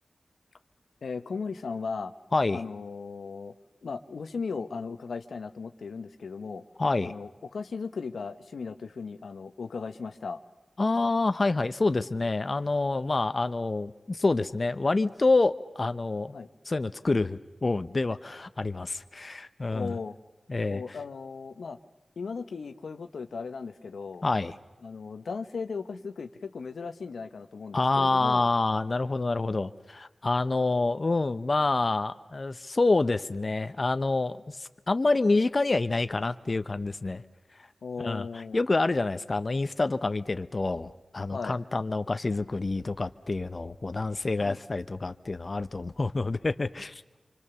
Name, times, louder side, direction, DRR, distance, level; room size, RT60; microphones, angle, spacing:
voice 1, 1.0-2.1 2.5-3.5 3.8-6.6 7.0-10.4 16.3-16.5 19.7-20.1 20.7-21.8 22.2-24.2 24.8-28.5 37.8-38.6 41.3-41.6 44.4-44.6, left 5 dB, 85° left, 9 dB, 0.9 m, -37 dB
voice 2, 2.3-2.6 6.8-7.1 10.8-16.3 16.6-19.9 20.5-21.0 24.2-24.5 27.7-37.2 37.5-37.7 38.0-47.0, left 3 dB, 50° left, 11 dB, 0.8 m, -27 dB
26.5 x 25.0 x 7.0 m, 1.1 s
cardioid pair, 45°, 0 cm